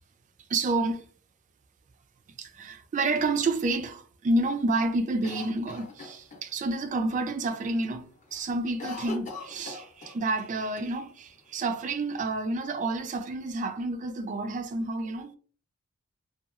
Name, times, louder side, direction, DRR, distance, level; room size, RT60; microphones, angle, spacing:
voice 1, 0.5-1.1 2.4-15.4, right 2 dB, 35° right, 0.3 m, -29 dB
Cough, 5.2-6.7 7.1-7.2 7.5-7.9 8.2-10.5 10.8-10.9 11.6-12.4, left 3 dB, 35° left, 0.6 m, -41 dB
2.8 x 2.3 x 2.4 m
head